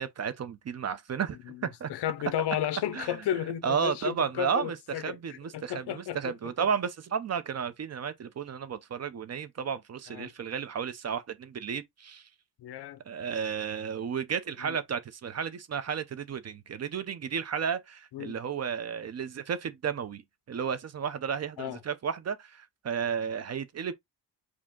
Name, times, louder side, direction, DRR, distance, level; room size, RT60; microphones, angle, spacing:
voice 1, 0.0-1.9 2.9-3.2 3.6-12.3 13.1-20.2 20.5-23.9, right 7 dB, 40° right, 0.6 m, -33 dB
voice 2, 1.5-6.5 10.1-10.3 12.6-13.0 14.6-14.8 18.1-18.4 21.6-21.8, left 11 dB, 70° left, 0.7 m, -34 dB
5.0 x 2.8 x 3.6 m
wide cardioid pair, 160°, 43 cm